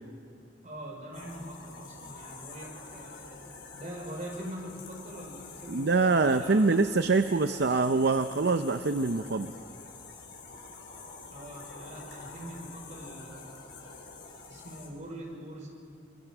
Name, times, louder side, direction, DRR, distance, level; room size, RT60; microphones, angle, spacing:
voice 1, 0.6-3.4 3.7-6.8 11.3-13.7 14.5-15.7, right 1 dB, 40° right, 0 dB, 4.9 m, -43 dB
sound 1, 1.1-14.9, left 4 dB, 75° left, 4.6 m, -47 dB
voice 2, 5.7-9.5, right 3 dB, 60° right, 9 dB, 0.6 m, -25 dB
25.0 x 23.5 x 6.1 m, 2.4 s
head